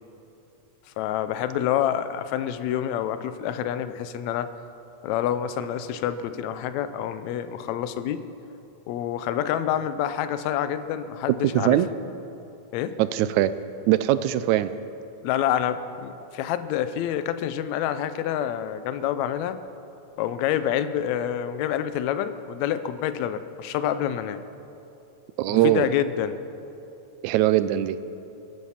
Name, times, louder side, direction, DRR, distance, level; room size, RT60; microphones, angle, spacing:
voice 1, 1.0-4.5 5.0-8.2 8.9-11.8 12.7-13.0 15.2-19.6 20.2-24.4 25.5-26.4, left 10 dB, 80° left, 11 dB, 1.9 m, -27 dB
voice 2, 11.5-11.9 13.0-13.5 13.9-14.7 25.4-25.9 27.2-28.0, right 14 dB, 85° right, 13 dB, 2.0 m, -21 dB
22.0 x 9.3 x 5.7 m, 2.8 s
omnidirectional pair, 3.3 m